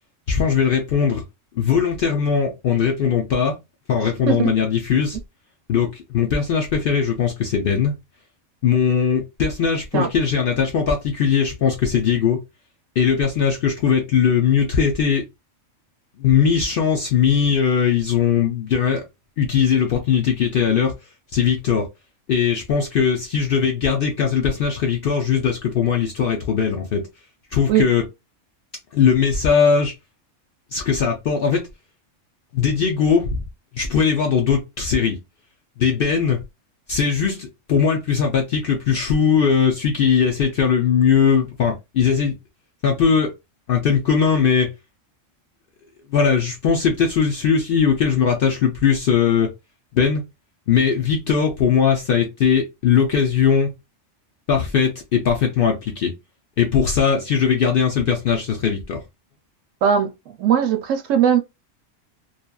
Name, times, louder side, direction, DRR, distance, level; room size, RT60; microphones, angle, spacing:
voice 1, 0.3-1.2 1.6-3.5 3.9-5.2 5.7-7.9 8.6-12.4 13.0-15.2 16.2-19.0 19.4-20.9 21.3-21.9 22.3-27.1 27.5-28.0 28.9-29.9 30.7-31.6 32.5-33.4 33.7-35.2 35.8-36.4 36.9-42.3 42.8-43.3 43.7-44.7 46.1-49.5 49.9-50.2 50.7-53.7 54.5-56.1 56.6-59.0, left 7 dB, 65° left, 0.6 m, -19 dB
voice 2, 59.8-61.4, right 8 dB, 75° right, 0.9 m, -19 dB
2.7 x 2.3 x 2.2 m
omnidirectional pair, 1.4 m